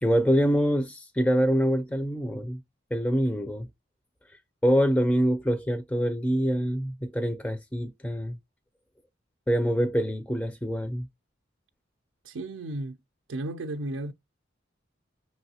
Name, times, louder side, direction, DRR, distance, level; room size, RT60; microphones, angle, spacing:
voice 1, 0.0-2.6 2.9-3.7 4.6-8.4 9.5-11.1, equal, 5° left, 0.3 m, -25 dB
voice 2, 12.2-13.0 13.3-14.1, right 1 dB, 85° right, 0.4 m, -34 dB
5.9 x 3.1 x 2.8 m
head